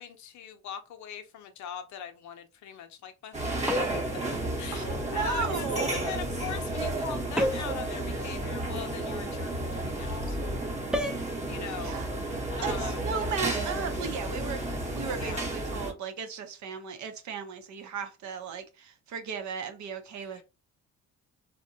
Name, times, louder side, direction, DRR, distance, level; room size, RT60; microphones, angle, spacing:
voice 1, 0.0-4.1 4.6-5.7 6.0-10.4 11.5-12.0 12.6-13.0 15.1-15.5 20.2-20.4, left 8 dB, 70° left, 0.6 m, -41 dB
sound 1, 3.3-15.9, right 1 dB, 25° right, 0.8 m, -32 dB
sound 2, 3.7-4.2 7.4-7.8 10.9-11.3, left 1 dB, 5° right, 0.3 m, -29 dB
voice 2, 4.7-5.9 11.8-12.1 12.6-20.4, right 6 dB, 70° right, 0.7 m, -36 dB
2.7 x 2.1 x 2.6 m
cardioid pair, 90°, 30 cm